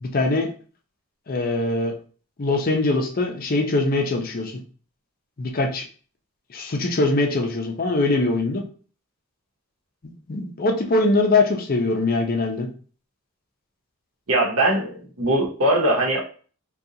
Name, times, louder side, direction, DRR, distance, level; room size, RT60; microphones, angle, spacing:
voice 1, 0.0-0.5 1.3-1.9 2.4-4.5 5.4-5.8 6.5-8.6 10.3-12.7, left 2 dB, 40° left, 3 dB, 0.5 m, -22 dB
voice 2, 14.3-16.2, right 1 dB, 85° right, -2 dB, 0.9 m, -21 dB
3.8 x 2.3 x 2.8 m, 0.41 s
head